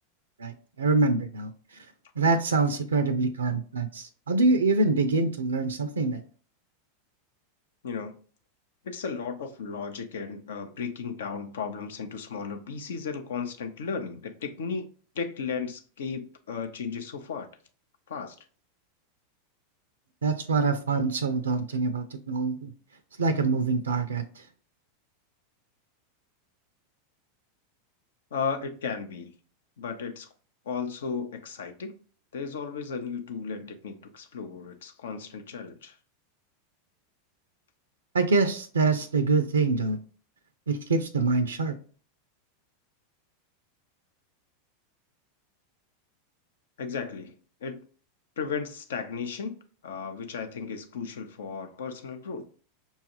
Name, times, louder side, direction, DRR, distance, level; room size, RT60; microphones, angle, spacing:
voice 1, 0.4-1.9 2.2-6.2 20.2-22.7 23.2-24.5 38.1-40.0 40.7-41.8, right 3 dB, 90° right, 0.4 m, -25 dB
voice 2, 7.8-8.2 8.8-14.9 15.1-17.5 18.1-18.4 28.3-29.3 29.8-30.3 30.7-32.0 32.3-36.0 46.8-47.3 47.6-47.8 48.4-49.6 49.8-52.4, left 5 dB, 75° left, 0.6 m, -35 dB
5.4 x 2.3 x 2.9 m
hypercardioid pair, 100°, 0 cm